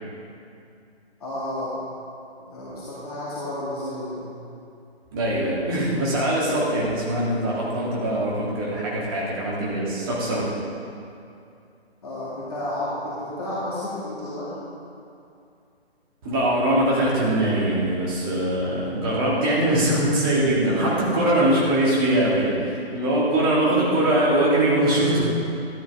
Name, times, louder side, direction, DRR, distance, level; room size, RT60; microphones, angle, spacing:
voice 1, 1.2-1.8 2.4-4.3 12.0-14.5, left 1 dB, 35° left, -10 dB, 2.3 m, -31 dB
voice 2, 5.1-10.5 16.2-25.2, right 1 dB, 20° right, -6 dB, 1.9 m, -22 dB
13.0 x 10.5 x 3.5 m, 2.5 s
figure-of-eight pair, 150°, 33 cm